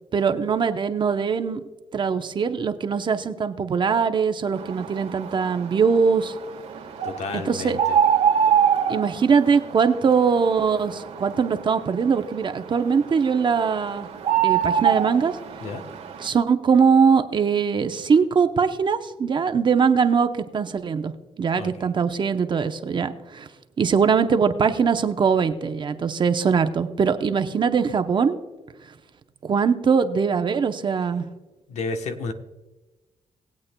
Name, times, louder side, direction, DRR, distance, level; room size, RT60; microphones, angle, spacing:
voice 1, 0.1-1.6 1.9-6.3 7.3-7.8 8.9-14.1 14.4-15.3 16.2-21.1 21.4-23.5 23.8-28.4 29.4-31.3, right 6 dB, 45° right, 8 dB, 0.7 m, -21 dB
sound 1, 4.5-16.3, right 8 dB, 75° right, 1.5 m, -26 dB
voice 2, 7.0-8.0 15.6-15.8 21.5-21.9 31.7-32.3, left 4 dB, 75° left, 6 dB, 1.0 m, -31 dB
20.0 x 8.4 x 2.2 m, 1.1 s
cardioid pair, 105°, 12 cm